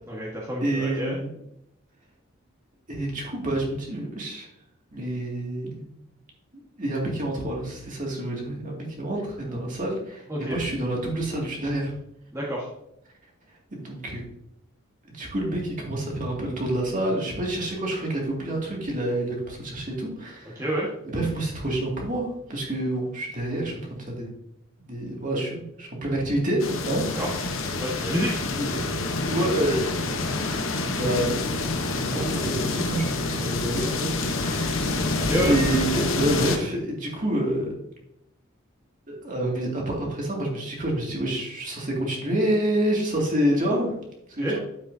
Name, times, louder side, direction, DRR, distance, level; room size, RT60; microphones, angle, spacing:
voice 1, 0.1-1.2 10.3-10.6 12.3-12.7 20.5-20.9 27.1-27.3 27.8-28.4 35.2-35.5 44.4-44.6, equal, 15° right, -5 dB, 1.4 m, -28 dB
voice 2, 0.6-1.3 2.9-4.5 4.9-5.8 6.8-11.9 13.7-14.2 15.1-20.6 21.1-23.7 24.1-24.3 24.8-27.4 28.5-28.9 29.3-29.8 30.2-30.6 30.9-31.6 32.1-34.1 34.4-35.1 35.5-37.7 39.1-43.9 44.3-44.6, right 1 dB, 40° right, -1 dB, 2.3 m, -28 dB
sound 1, 26.6-36.6, left 3 dB, 70° left, 1.0 m, -27 dB
9.5 x 7.5 x 2.7 m, 0.78 s
head